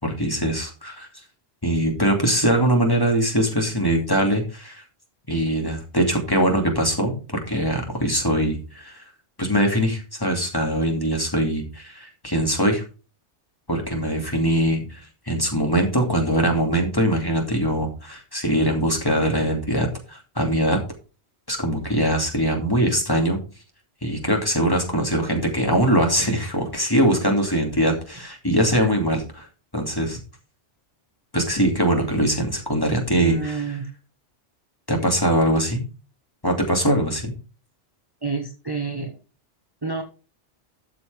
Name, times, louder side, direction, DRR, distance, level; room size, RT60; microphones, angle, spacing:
voice 1, 0.0-1.1 1.6-4.8 5.3-9.0 9.4-12.8 13.7-15.0 15.3-20.8 21.5-23.4 24.0-29.5 29.7-30.2 31.3-33.6 34.9-35.8 36.4-37.3, right 1 dB, 20° left, 2 dB, 2.6 m, -22 dB
voice 2, 33.1-33.9 38.2-39.2 39.8-40.0, right 4 dB, 20° right, 3 dB, 1.4 m, -29 dB
13.0 x 6.8 x 3.5 m, 0.33 s
omnidirectional pair, 1.2 m